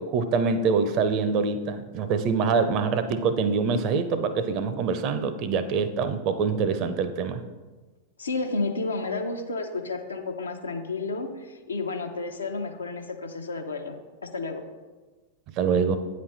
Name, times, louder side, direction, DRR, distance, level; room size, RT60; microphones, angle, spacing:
voice 1, 0.0-7.4 15.6-16.0, right 5 dB, 40° right, 10 dB, 0.5 m, -25 dB
voice 2, 8.2-14.0 14.3-14.6, left 3 dB, 75° left, 5 dB, 0.6 m, -31 dB
8.6 x 3.2 x 4.1 m, 1.3 s
figure-of-eight pair, 90°, 0 cm